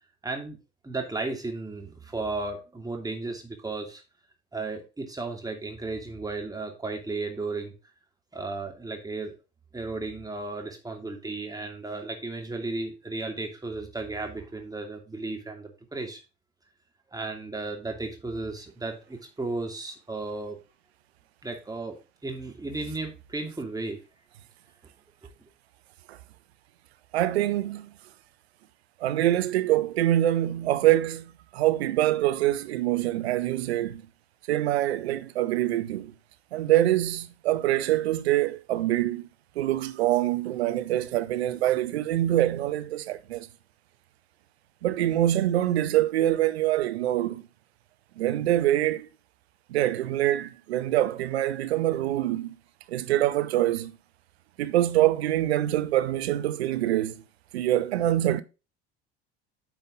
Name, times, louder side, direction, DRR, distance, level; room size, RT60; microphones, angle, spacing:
voice 1, 0.2-0.6 0.8-4.0 4.5-7.7 8.3-9.3 9.7-16.2 17.1-20.6 21.4-22.0 22.2-24.0 25.2-25.3, right 3 dB, 10° right, 2.7 m, -34 dB
voice 2, 27.1-27.9 29.0-34.0 34.5-36.1 36.5-39.3 39.6-43.5 44.8-47.5 48.2-49.1 49.7-52.5 52.9-54.0 54.6-57.2 57.5-58.4, right 13 dB, 70° right, 0.8 m, -25 dB
9.1 x 5.6 x 3.7 m
figure-of-eight pair, 65°, 33 cm